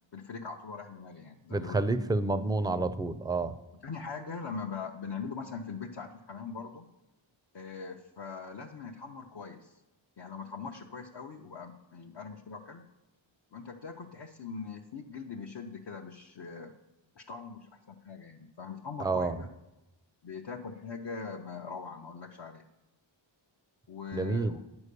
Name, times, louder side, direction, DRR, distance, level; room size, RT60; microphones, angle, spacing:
voice 1, 0.1-1.8 3.8-6.9 7.5-9.8 10.2-12.8 13.5-16.7 17.2-19.5 20.2-22.7 23.9-24.6, left 5 dB, 60° left, 1 dB, 0.7 m, -41 dB
voice 2, 1.5-3.6 19.0-19.4 24.1-24.6, right 3 dB, 10° right, 13 dB, 0.4 m, -29 dB
9.7 x 4.5 x 6.7 m, 0.98 s
wide cardioid pair, 65°, 47 cm